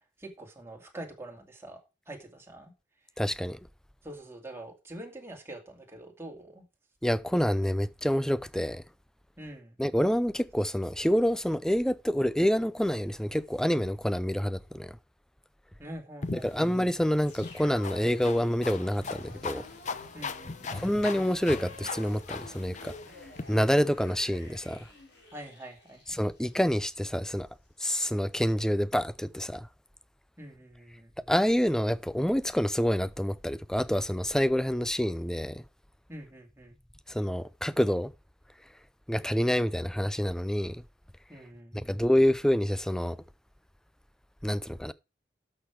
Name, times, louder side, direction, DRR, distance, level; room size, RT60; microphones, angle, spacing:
voice 1, 0.2-1.8 2.1-2.7 4.0-6.6 9.4-9.7 15.8-16.7 20.1-20.8 25.3-26.2 30.4-31.1 36.1-36.8 41.3-41.9, right 1 dB, 15° right, 2.4 m, -45 dB
voice 2, 3.2-3.6 7.0-8.8 9.8-15.0 16.3-19.6 20.7-22.9 23.5-24.8 26.1-27.5 27.8-29.7 31.3-35.6 37.1-38.1 39.1-40.8 41.7-43.2 44.4-44.9, equal, 5° left, 0.4 m, -27 dB
sound 1, 16.2-23.4, left 4 dB, 40° left, 0.7 m, -39 dB
sound 2, 17.2-27.4, left 2 dB, 60° left, 4.1 m, -50 dB
12.0 x 6.6 x 4.7 m
head